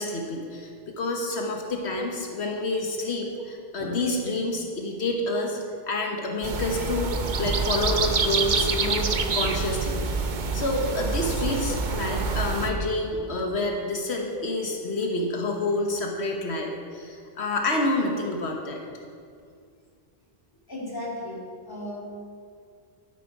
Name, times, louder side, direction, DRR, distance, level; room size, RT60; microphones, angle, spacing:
voice 1, 0.0-5.6 5.9-7.1 7.4-18.8, left 2 dB, 85° left, 1 dB, 1.4 m, -28 dB
sound 1, 6.4-12.7, right 4 dB, 50° right, 0.9 m, -26 dB
voice 2, 20.7-22.1, left 1 dB, 20° left, -4 dB, 2.5 m, -35 dB
13.0 x 9.8 x 4.7 m, 2.3 s
omnidirectional pair, 1.1 m